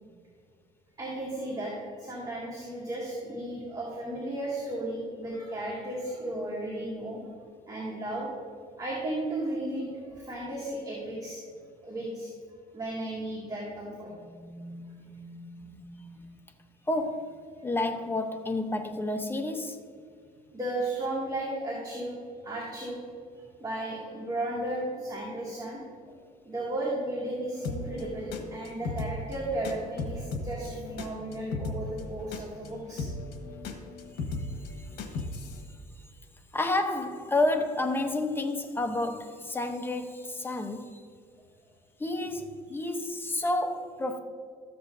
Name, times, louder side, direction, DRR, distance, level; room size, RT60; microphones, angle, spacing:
voice 1, 1.0-7.2 7.7-8.3 8.8-11.4 11.8-12.3 12.7-14.1 20.5-22.2 22.4-23.0 23.6-26.1 26.4-33.1, right 1 dB, 20° right, 2.3 m, -34 dB
voice 2, 14.3-16.2 16.9-19.8 34.6-34.9 35.1-35.3 35.7-35.8 36.5-41.0 42.0-44.2, left 2 dB, 15° left, 0.9 m, -31 dB
sound 1, 27.6-35.6, left 2 dB, 90° left, 1.1 m, -37 dB
13.0 x 7.7 x 2.7 m
cardioid pair, 110°, 17 cm